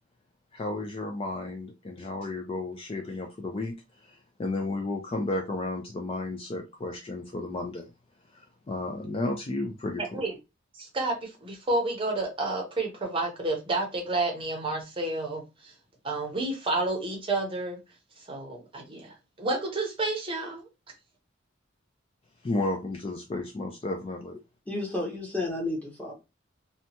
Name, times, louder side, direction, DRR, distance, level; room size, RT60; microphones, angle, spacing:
voice 1, 0.5-3.7 4.0-7.9 8.3-10.2 22.4-24.4, left 2 dB, 25° left, 0.3 m, -33 dB
voice 2, 10.8-15.7 16.0-17.8 18.3-20.7, right 2 dB, 25° right, 0.7 m, -30 dB
voice 3, 24.7-26.1, left 2 dB, 5° left, 0.8 m, -31 dB
2.7 x 2.2 x 2.8 m
head